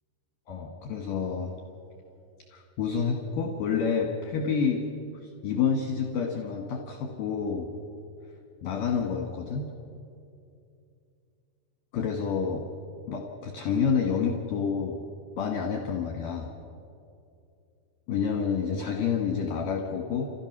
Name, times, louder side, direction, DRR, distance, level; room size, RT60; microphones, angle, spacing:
voice 1, 0.5-1.5 2.5-4.8 5.2-7.7 8.6-9.7 11.9-12.6 13.1-15.0 15.4-16.5 18.1-20.3, left 6 dB, 65° left, 1 dB, 2.5 m, -28 dB
29.0 x 16.0 x 6.0 m, 2.5 s
omnidirectional pair, 5.5 m